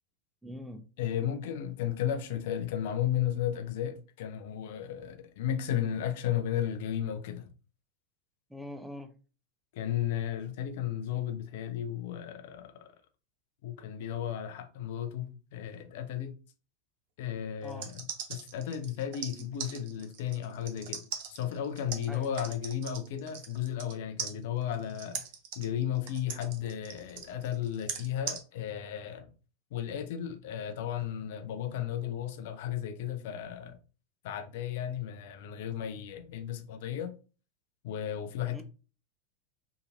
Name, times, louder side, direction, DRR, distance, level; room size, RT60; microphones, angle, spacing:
voice 1, 0.4-0.9 8.5-9.1 17.6-17.9 22.1-22.3 38.5-38.6, left 1 dB, 5° right, 0.5 m, -43 dB
voice 2, 1.0-7.5 9.7-12.9 13.6-16.3 17.2-18.0 18.3-21.0 21.3-25.2 25.6-29.3 29.7-33.8 34.2-37.1 37.8-38.6, left 10 dB, 60° left, 0.5 m, -34 dB
sound 1, 17.6-23.9 24.2-28.4, right 7 dB, 55° right, 0.6 m, -40 dB
2.8 x 2.4 x 2.8 m
figure-of-eight pair, 85°, 0 cm